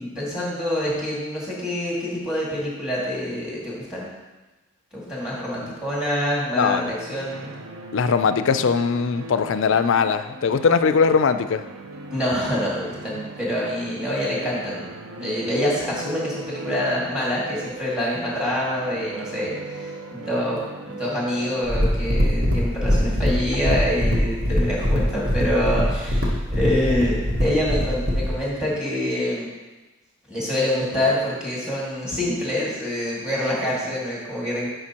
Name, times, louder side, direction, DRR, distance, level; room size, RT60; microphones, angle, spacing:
voice 1, 0.0-4.1 4.9-7.5 12.1-14.9 15.2-20.6 20.9-29.5 30.3-34.7, left 1 dB, 5° right, -6 dB, 2.0 m, -26 dB
voice 2, 6.5-6.9 7.9-11.6, left 5 dB, 60° left, 11 dB, 0.4 m, -20 dB
sound 1, 6.8-23.6, right 2 dB, 70° right, 0.6 m, -39 dB
sound 2, 21.7-28.3, equal, 45° right, 1.0 m, -22 dB
10.5 x 5.1 x 2.9 m, 1.1 s
head